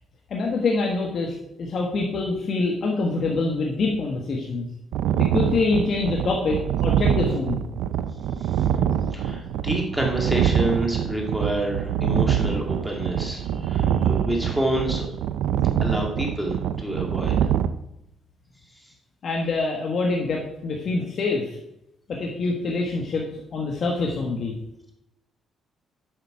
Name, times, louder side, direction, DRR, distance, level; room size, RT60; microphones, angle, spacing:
voice 1, 0.3-4.7 5.2-7.6 19.2-21.6 22.1-23.3 23.5-24.5, left 3 dB, 55° left, -1 dB, 1.4 m, -25 dB
sound 1, 4.9-17.7, right 9 dB, 85° right, 0.4 m, -24 dB
voice 2, 9.1-15.1 15.8-17.4, right 1 dB, 5° right, 0 dB, 2.0 m, -28 dB
7.9 x 5.8 x 4.8 m, 0.82 s
cardioid pair, 90°, 0 cm